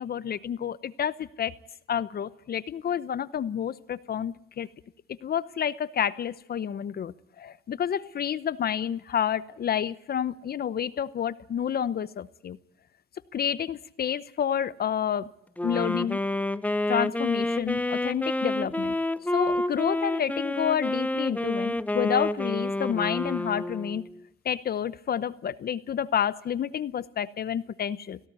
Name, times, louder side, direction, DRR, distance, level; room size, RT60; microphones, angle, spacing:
voice 1, 0.0-1.5 1.9-4.7 5.1-12.6 13.3-15.3 15.6-16.2 16.9-19.0 19.3-24.0 24.4-28.2, left 9 dB, 50° left, 0.8 m, -29 dB
Wind instrument woodwind instrument, 15.6-24.2, left 1 dB, 5° left, 0.8 m, -29 dB
17.5 x 17.5 x 9.5 m
cardioid pair, 90°, 20 cm